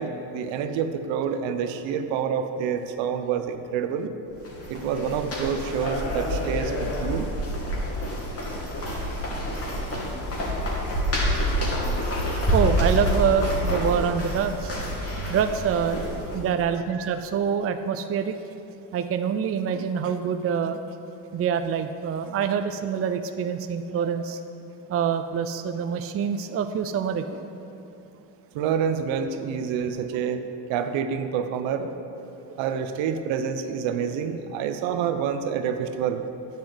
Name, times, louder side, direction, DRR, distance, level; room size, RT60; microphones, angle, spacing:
voice 1, 0.0-4.1 4.7-7.3 28.5-30.4 30.7-31.9 32.6-36.2, right 7 dB, 65° right, 8 dB, 1.1 m, -27 dB
sound 1, 4.3-16.4, equal, 30° left, 2.7 m, -27 dB
voice 2, 10.6-11.7 12.5-14.8 15.3-16.0 16.3-18.3 18.9-20.8 21.3-24.4 24.9-27.5 32.5-32.6, right 7 dB, 30° right, 8 dB, 0.5 m, -26 dB
9.3 x 7.5 x 7.9 m, 2.8 s
supercardioid pair, 85°, 48 cm